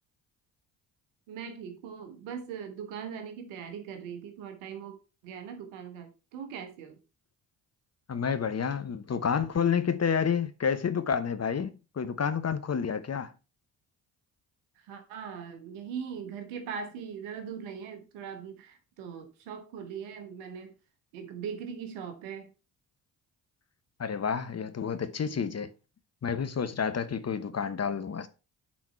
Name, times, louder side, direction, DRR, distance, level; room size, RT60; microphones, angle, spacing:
voice 1, 1.3-5.0 5.2-7.0 14.8-20.7 21.1-22.5, right 7 dB, 75° right, 1.5 m, -40 dB
voice 2, 8.1-13.3 24.0-25.7 26.2-28.3, left 7 dB, 30° left, 0.9 m, -29 dB
8.3 x 4.2 x 4.4 m
hypercardioid pair, 45°, 48 cm